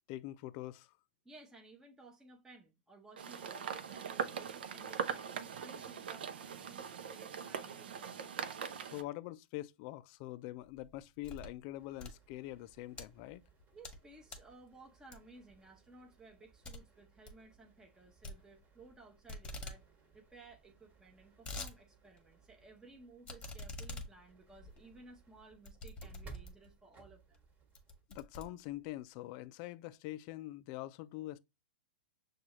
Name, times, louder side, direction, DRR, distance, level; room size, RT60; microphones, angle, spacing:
voice 1, 0.1-0.9 8.9-13.4 28.1-31.4, left 16 dB, 45° left, 0.3 m, -44 dB
voice 2, 1.2-8.7 13.7-19.8 20.1-27.4, right 3 dB, 10° right, 0.7 m, -58 dB
sound 1, 3.2-9.0, right 7 dB, 80° right, 0.6 m, -41 dB
sound 2, 10.6-11.6 11.9-13.0 13.5-14.0 14.3-14.6 15.1-15.5 15.9-16.0 16.3-16.4 16.6-16.8 17.1-17.4 18.2-19.0 19.3-19.8 20.1-20.2 20.4-20.5 21.0-21.7 22.2-22.3 23.2-26.7 27.3-27.4 27.7-29.0, left 2 dB, 20° left, 1.1 m, -46 dB
sound 3, 11.8-28.0, right 5 dB, 25° right, 1.2 m, -61 dB
6.1 x 2.3 x 2.9 m
hypercardioid pair, 125°, 5 cm